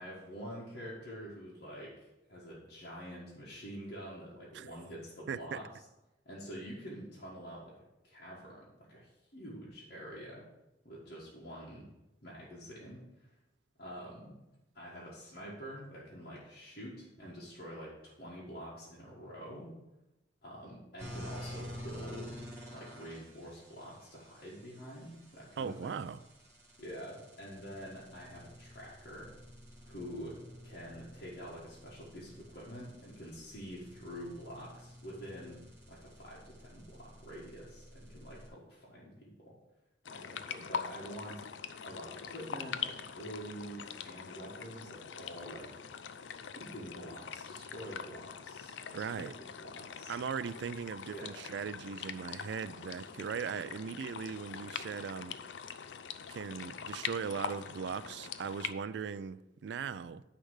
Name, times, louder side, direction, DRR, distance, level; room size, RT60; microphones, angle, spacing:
voice 1, 0.0-5.6 6.2-10.5 10.8-11.9 12.2-13.3 13.8-14.4 14.7-19.7 20.4-22.4 22.7-26.0 26.8-29.3 29.8-35.6 35.9-39.6 40.1-45.7 46.5-50.5 51.1-51.3, equal, 55° left, 1.6 m, -47 dB
voice 2, 5.3-5.6 25.6-26.2 48.9-49.3 50.1-55.4 56.3-60.2, right 6 dB, 65° right, 0.3 m, -39 dB
sound 1, 21.0-38.5, equal, 15° right, 3.0 m, -51 dB
sound 2, 40.0-58.7, left 7 dB, 80° left, 0.5 m, -43 dB
9.7 x 3.4 x 6.4 m
head